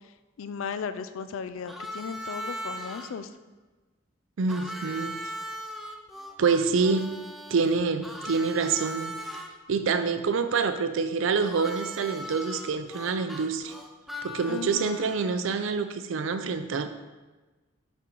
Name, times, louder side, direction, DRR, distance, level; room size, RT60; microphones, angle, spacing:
voice 1, 0.4-3.3 14.5-15.1, left 6 dB, 85° left, 12 dB, 0.4 m, -36 dB
Harmonica, 1.7-3.1 4.5-9.5 11.4-15.4, equal, ahead, 0.4 m, -39 dB
voice 2, 4.4-5.2 6.4-7.2 7.5-9.1 9.7-13.7 14.2-16.9, right 5 dB, 75° right, 9 dB, 0.4 m, -26 dB
5.9 x 4.4 x 3.9 m, 1.2 s
head